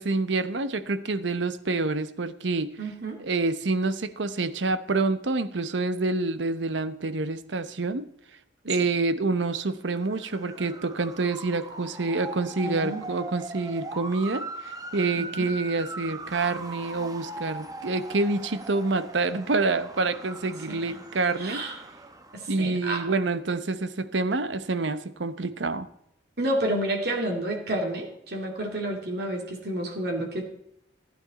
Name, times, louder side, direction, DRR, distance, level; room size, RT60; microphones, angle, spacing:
voice 1, 0.0-2.8 3.2-8.1 8.7-21.6 22.5-25.9, right 3 dB, 80° right, 12 dB, 0.9 m, -27 dB
voice 2, 2.8-3.2 8.8-8.9 12.6-13.0 15.2-15.5 20.7-21.0 21.4-21.8 22.3-23.0 26.4-30.5, right 1 dB, 60° right, 1 dB, 2.5 m, -30 dB
Motor vehicle (road) / Siren, 9.9-22.6, right 2 dB, 20° right, 1.0 m, -40 dB
15.0 x 9.4 x 4.1 m, 0.76 s
head